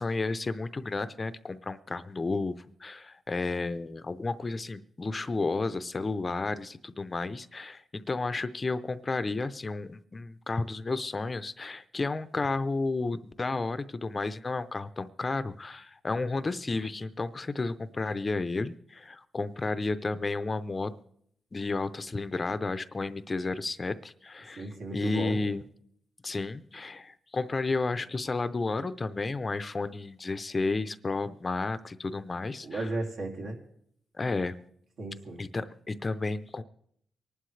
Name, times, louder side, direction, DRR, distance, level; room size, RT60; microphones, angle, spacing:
voice 1, 0.0-20.9 21.5-25.6 26.2-32.9 34.2-34.6 35.4-36.6, left 3 dB, 25° left, 12 dB, 0.6 m, -32 dB
voice 2, 24.6-25.4 32.6-33.5 35.0-35.4, right 2 dB, 75° right, 0 dB, 2.8 m, -35 dB
24.5 x 11.5 x 3.2 m, 0.69 s
cardioid pair, 120°, 0 cm